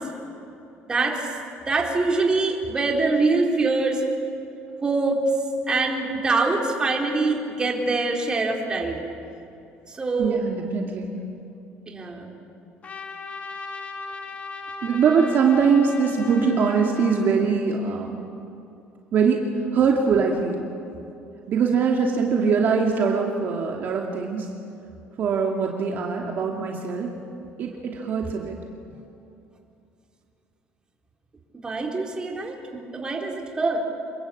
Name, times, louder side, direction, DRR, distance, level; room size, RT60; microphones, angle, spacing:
voice 1, 0.9-1.3 1.6-4.0 4.8-5.3 5.7-9.1 9.9-10.4 11.9-12.4 31.6-33.8, right 3 dB, 20° right, 0 dB, 3.9 m, -24 dB
voice 2, 10.2-11.2 14.8-18.3 19.1-20.7 21.5-24.5 25.2-27.1 27.6-28.6, right 5 dB, 50° right, 0 dB, 2.5 m, -22 dB
Trumpet, 12.8-17.5, left 4 dB, 30° left, 2.4 m, -37 dB
27.5 x 22.0 x 8.6 m, 2.7 s
cardioid pair, 135°, 4 cm